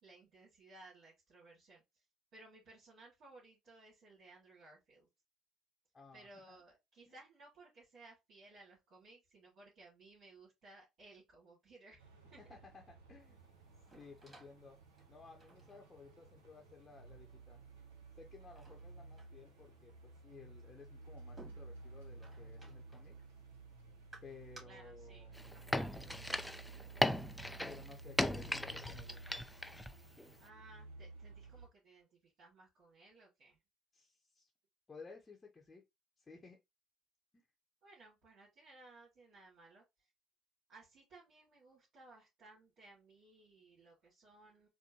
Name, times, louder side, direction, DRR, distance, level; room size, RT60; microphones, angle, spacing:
voice 1, 0.0-2.0 2.3-5.1 6.1-12.6 24.6-26.9 30.4-33.6 37.8-40.1 40.7-44.7, right 2 dB, 60° right, 2.1 m, -60 dB
voice 2, 5.9-6.6 7.1-7.2 12.4-13.4 13.8-14.8 15.1-17.6 18.2-23.1 24.2-25.3 27.7-29.4 33.9-34.5 34.9-35.8 36.2-36.6, left 4 dB, 30° left, 0.8 m, -57 dB
sound 1, 12.0-31.7, right 3 dB, 85° right, 0.9 m, -55 dB
sound 2, 13.2-24.6, right 2 dB, 20° right, 2.2 m, -64 dB
sound 3, 25.4-29.9 30.2-30.3, left 1 dB, 5° left, 0.3 m, -37 dB
4.2 x 2.2 x 2.8 m
hypercardioid pair, 60°, 0 cm